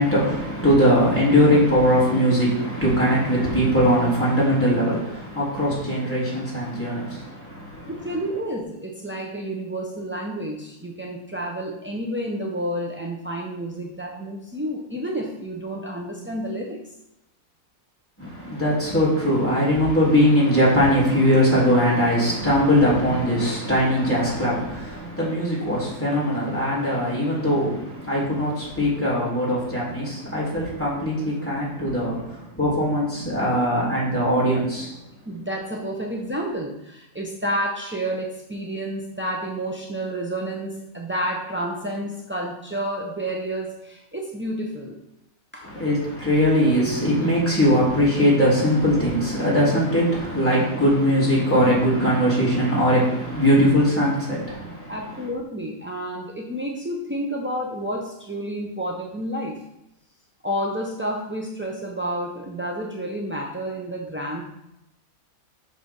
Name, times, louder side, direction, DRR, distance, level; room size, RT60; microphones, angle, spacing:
voice 1, 0.0-8.1 18.2-35.0 45.6-54.9, equal, 10° left, -8 dB, 3.3 m, -21 dB
voice 2, 7.9-16.8 35.2-45.0 45.5-45.7 54.9-59.6 60.4-64.4, right 1 dB, 15° right, -2 dB, 0.4 m, -30 dB
5.9 x 5.7 x 5.4 m, 0.86 s
omnidirectional pair, 1.5 m